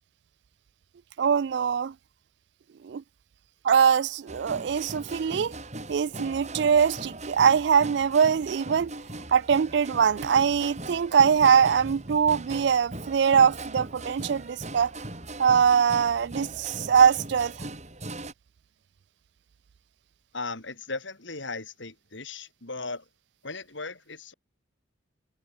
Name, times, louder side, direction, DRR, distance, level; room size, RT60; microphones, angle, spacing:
voice 1, 1.2-1.9 2.8-3.0 3.6-5.6 5.9-8.9 9.3-14.9 15.4-17.5, right 7 dB, 60° right, 0.3 m, -22 dB
sound 1, 4.3-18.3, right 2 dB, 35° right, 4.5 m, -39 dB
voice 2, 20.3-23.0 23.4-24.3, left 3 dB, 70° left, 3.8 m, -37 dB
head